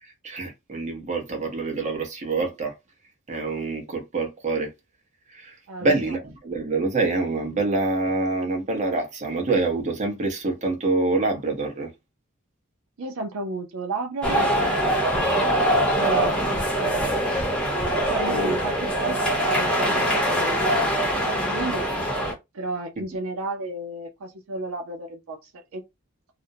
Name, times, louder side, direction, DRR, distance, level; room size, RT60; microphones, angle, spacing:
voice 1, 0.0-2.7 3.3-4.7 5.3-11.9 18.3-18.5, right 3 dB, 35° right, 0.8 m, -26 dB
voice 2, 5.7-6.1 13.0-15.2 15.9-17.4 18.1-21.9 22.5-25.8, right 2 dB, 80° right, 0.5 m, -33 dB
sound 1, 14.2-22.3, equal, 5° left, 0.8 m, -23 dB
2.5 x 2.1 x 2.6 m
head